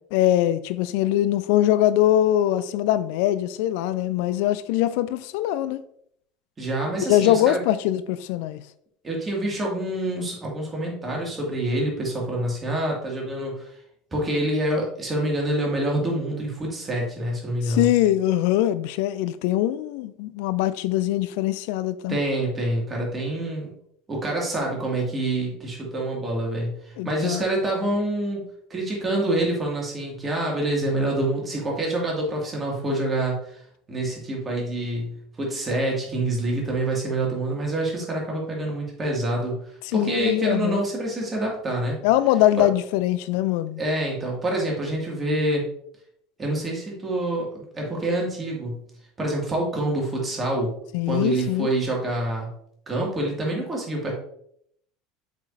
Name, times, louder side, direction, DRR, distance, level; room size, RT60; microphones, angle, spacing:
voice 1, 0.1-5.8 7.0-8.6 17.6-22.2 27.0-27.5 39.9-40.8 42.0-43.8 50.9-51.7, left 13 dB, 60° left, 0.3 m, -22 dB
voice 2, 6.6-7.6 9.0-13.7 14.1-17.9 22.1-23.7 24.1-33.6 33.9-39.6 39.9-42.0 42.6-42.7 43.8-45.6 46.4-48.8 49.2-50.7 51.1-52.5 52.9-54.1, right 1 dB, 20° right, 2.4 m, -26 dB
7.5 x 5.0 x 2.7 m
figure-of-eight pair, 70°, 0 cm